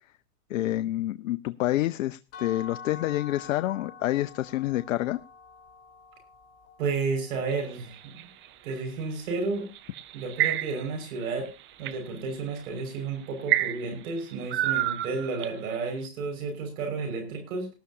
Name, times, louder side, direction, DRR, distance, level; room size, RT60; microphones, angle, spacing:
voice 1, 0.5-5.2, left 15 dB, 55° left, 13 dB, 0.7 m, -28 dB
sound 1, 2.3-8.1, left 5 dB, 30° left, 3.5 m, -47 dB
voice 2, 6.8-8.3 8.6-9.7 10.1-11.5 11.8-17.7, right 4 dB, 60° right, 5 dB, 5.8 m, -32 dB
sound 2, 7.5-8.8 9.7-11.0 11.4-12.0 12.6-12.8 13.5-15.7, right 14 dB, 25° right, 0.8 m, -28 dB
19.0 x 12.5 x 2.8 m, 0.31 s
hypercardioid pair, 120°, 47 cm